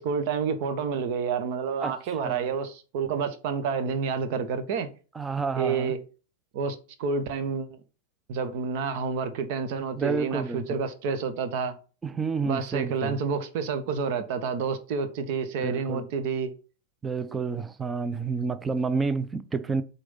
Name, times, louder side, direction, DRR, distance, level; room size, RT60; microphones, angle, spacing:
voice 1, 0.0-4.9 5.6-6.0 6.5-7.7 8.3-11.8 12.4-16.5, right 5 dB, 50° right, 1.3 m, -29 dB
voice 2, 1.8-2.5 5.1-5.9 10.0-10.6 12.0-13.2 15.6-16.1 17.0-19.8, right 4 dB, 15° right, 0.7 m, -30 dB
8.1 x 4.1 x 5.6 m
figure-of-eight pair, 90°, 0 cm